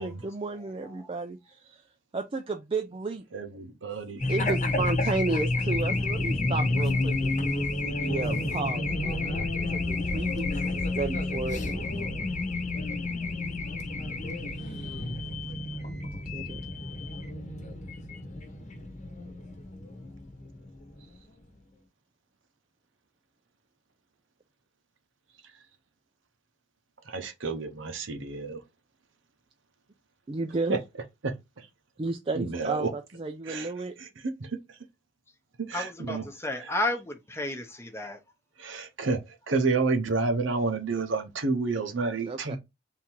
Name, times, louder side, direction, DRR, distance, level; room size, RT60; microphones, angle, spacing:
voice 1, 0.0-1.8 2.1-3.2 4.3-11.9 14.6-15.1 16.3-16.6 30.3-30.8 32.0-33.9 42.2-42.6, right 3 dB, 30° right, 0.4 m, -33 dB
voice 2, 0.5-1.1 35.7-38.2, left 2 dB, 15° left, 0.8 m, -33 dB
voice 3, 3.3-4.3 27.0-28.6 30.7-30.8 31.2-31.7 32.3-32.9 33.5-33.7 34.0-34.8 35.6-36.2 36.6-36.7 38.6-42.6, right 3 dB, 80° right, 0.9 m, -30 dB
Race car auto racing / Alarm, 4.2-21.1, left 2 dB, 40° left, 1.0 m, -30 dB
3.6 x 2.8 x 4.4 m
head